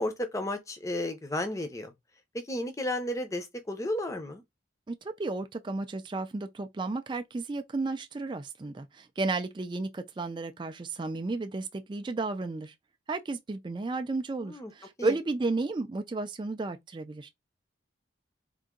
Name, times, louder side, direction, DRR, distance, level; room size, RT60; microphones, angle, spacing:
voice 1, 0.0-1.9 2.3-4.4 14.4-14.7 15.0-15.2, left 1 dB, 15° left, 0.6 m, -33 dB
voice 2, 4.9-12.7 13.1-17.3, right 3 dB, 25° right, 0.3 m, -33 dB
3.7 x 2.6 x 3.7 m
head